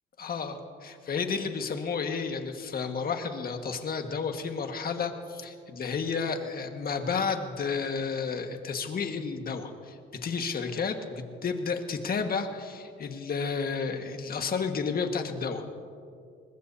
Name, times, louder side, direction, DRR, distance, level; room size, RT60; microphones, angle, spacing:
voice 1, 0.2-15.7, left 5 dB, 50° left, 5 dB, 1.6 m, -32 dB
23.0 x 20.5 x 2.7 m, 2.3 s
cardioid pair, 90°, 20 cm